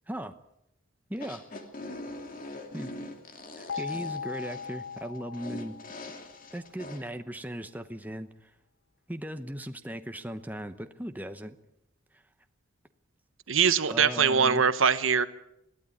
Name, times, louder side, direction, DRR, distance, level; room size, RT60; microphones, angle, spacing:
sound 1, 1.1-7.0, left 2 dB, 40° left, 2.5 m, -42 dB
voice 1, 1.1-1.4 2.7-2.9 3.5-5.8 6.5-8.5 9.1-11.6 12.1-12.2 13.9-14.6, equal, 10° right, 8 dB, 0.9 m, -38 dB
sound 2, 3.7-6.6, left 6 dB, 65° left, 1.4 m, -39 dB
voice 2, 13.5-15.3, right 6 dB, 75° right, 13 dB, 1.1 m, -22 dB
21.5 x 14.5 x 9.7 m, 0.84 s
head